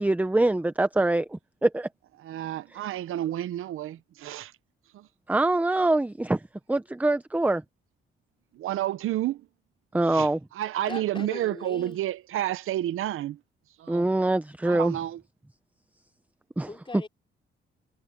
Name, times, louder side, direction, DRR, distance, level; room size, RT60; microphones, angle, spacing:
voice 1, 0.0-1.9 5.3-6.4 6.7-7.6 9.9-10.4 13.9-15.0 16.6-16.7, right 2 dB, 5° right, 0.7 m, -24 dB
voice 2, 2.2-4.5 4.9-5.1 8.5-9.5 10.1-13.4 13.8-14.1 14.6-15.2, right 13 dB, 80° right, 0.7 m, -30 dB
voice 3, 10.9-12.0 16.7-17.1, left 3 dB, 25° left, 5.4 m, -39 dB
cardioid pair, 100°, 21 cm